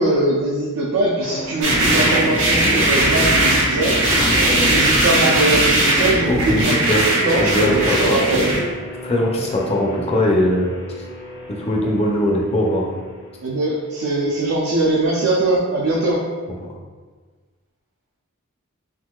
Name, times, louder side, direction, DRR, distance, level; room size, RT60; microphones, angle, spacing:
voice 1, 0.0-4.0 4.3-8.5 13.4-16.2, right 2 dB, 80° right, -4 dB, 0.5 m, -21 dB
sound 1, 1.2-14.2, equal, 60° left, 0.8 m, -35 dB
sound 2, 1.6-8.6, right 1 dB, 60° right, 0.9 m, -18 dB
voice 2, 6.2-7.0 7.3-8.6 9.0-10.7 11.5-12.9, left 1 dB, 30° left, -1 dB, 0.4 m, -20 dB
3.9 x 2.5 x 2.3 m, 1.4 s
head